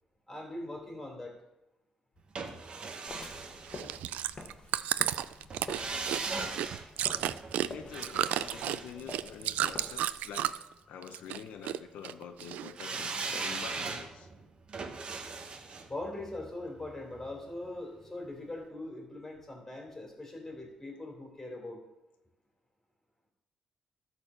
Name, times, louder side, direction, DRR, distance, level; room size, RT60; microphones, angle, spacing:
voice 1, 0.3-1.4 15.9-21.8, left 2 dB, 15° left, 1 dB, 3.0 m, -41 dB
sound 1, 2.4-4.5 5.5-9.8 12.8-17.8 18.1-18.2, right 4 dB, 40° right, 1.1 m, -39 dB
sound 2, 3.1-10.5, left 3 dB, 35° left, 1.3 m, -48 dB
Chewing mastication, 3.7-10.7 11.0-11.8 12.0-13.0 13.4-13.5, right 12 dB, 85° right, 0.3 m, -32 dB
voice 2, 7.7-10.5 10.9-14.3, left 8 dB, 90° left, 6 dB, 0.7 m, -46 dB
12.5 x 4.2 x 6.7 m, 0.94 s
cardioid pair, 115°, 2 cm